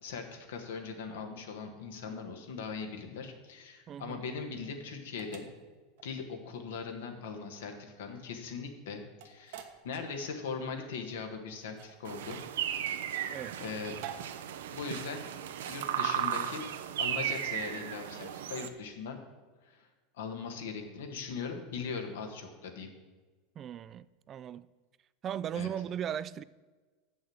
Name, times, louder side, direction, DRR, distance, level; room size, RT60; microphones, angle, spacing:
voice 1, 0.0-5.5 6.0-12.4 13.6-13.9 14.7-15.2 15.6-16.7 17.0-19.2 19.6-19.9 20.1-22.9 25.5-25.7, left 5 dB, 85° left, 1.5 m, -40 dB
sound 1, 3.5-18.9, right 9 dB, 70° right, 1.1 m, -52 dB
voice 2, 3.9-4.2 13.3-13.6 23.6-24.7 25.2-26.4, right 9 dB, 35° right, 0.3 m, -37 dB
sound 2, 12.0-18.7, right 10 dB, 85° right, 0.6 m, -35 dB
7.2 x 6.3 x 7.9 m
supercardioid pair, 115°, 0 cm